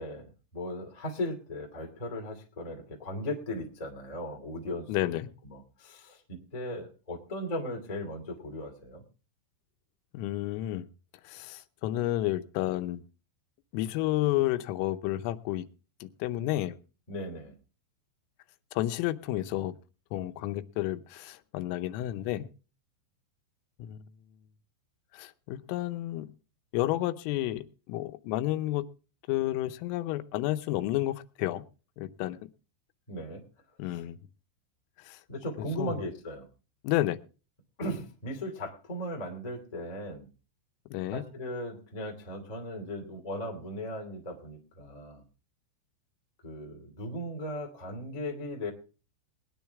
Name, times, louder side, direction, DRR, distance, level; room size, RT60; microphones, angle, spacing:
voice 1, 0.0-5.2 5.4-9.0 17.1-17.5 33.1-33.4 33.9-34.0 35.3-36.5 37.8-40.3 41.1-45.2 46.4-48.7, left 1 dB, 40° left, 1 dB, 0.5 m, -37 dB
voice 2, 4.9-5.3 10.1-10.9 11.2-13.0 13.7-15.7 16.0-16.8 18.7-19.7 20.1-22.5 23.8-24.0 25.1-26.3 26.7-28.8 29.3-31.6 32.0-32.5 33.8-34.2 35.0-35.2 35.6-35.9 36.8-37.2 40.9-41.2, left 15 dB, 85° left, 10 dB, 3.4 m, -31 dB
20.5 x 10.5 x 3.5 m, 0.35 s
omnidirectional pair, 5.9 m